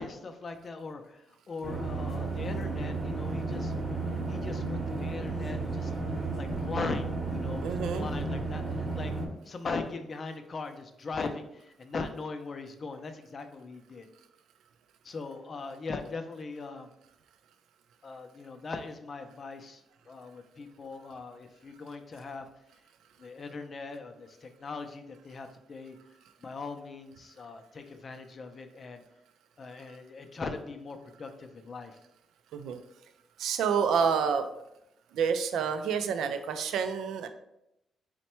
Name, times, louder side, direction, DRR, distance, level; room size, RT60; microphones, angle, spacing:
voice 1, 0.0-5.9 6.3-9.1 9.5-14.1 15.0-16.9 18.0-22.5 23.2-26.0 26.4-29.0 29.6-32.0, left 4 dB, 40° left, 6 dB, 0.5 m, -40 dB
sound 1, 1.6-9.3, right 3 dB, 25° right, 0.9 m, -33 dB
voice 2, 7.6-8.1 32.5-32.8 33.4-34.5 35.1-37.3, right 6 dB, 85° right, 8 dB, 0.4 m, -28 dB
4.2 x 2.2 x 4.2 m, 0.82 s
cardioid pair, 100°, 0 cm